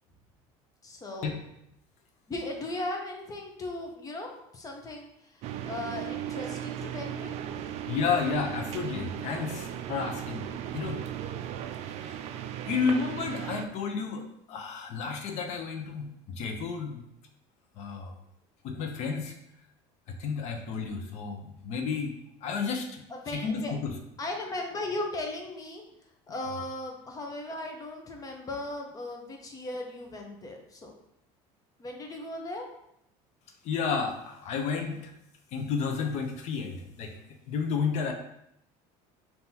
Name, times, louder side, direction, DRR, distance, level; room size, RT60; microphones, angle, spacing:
voice 1, 0.8-1.4 2.3-5.1 5.6-7.7 23.2-23.7 24.2-25.8 26.3-30.9 31.8-32.7, left 2 dB, 25° left, 2 dB, 0.8 m, -37 dB
sound 1, 5.4-13.7, right 10 dB, 50° right, 0.4 m, -36 dB
voice 2, 7.9-10.4 10.7-11.0 12.0-12.2 12.7-17.0 17.8-18.1 18.6-19.3 20.1-24.0 33.6-35.1 35.5-37.2 37.5-38.1, left 5 dB, 55° left, 4 dB, 0.7 m, -31 dB
5.5 x 2.8 x 2.8 m, 0.78 s
cardioid pair, 125°, 14 cm